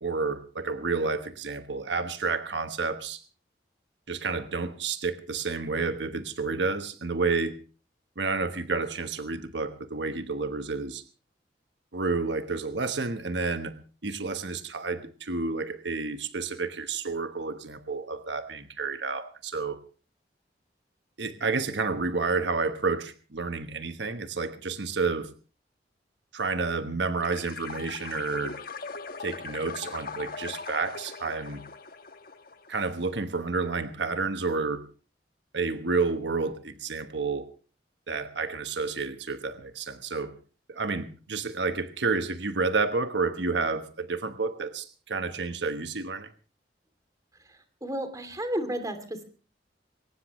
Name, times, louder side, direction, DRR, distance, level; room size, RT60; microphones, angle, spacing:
voice 1, 0.0-3.2 4.1-7.6 8.2-11.0 11.9-13.8 14.0-19.8 21.2-25.3 26.3-28.6 29.2-31.6 32.7-34.8 35.5-37.5 38.1-40.4 40.7-46.3, right 4 dB, 80° right, 1.2 m, -30 dB
sound 1, 27.2-32.9, left 4 dB, 55° left, 1.4 m, -40 dB
voice 2, 47.8-49.2, equal, 20° right, 2.8 m, -32 dB
22.5 x 18.5 x 3.1 m
head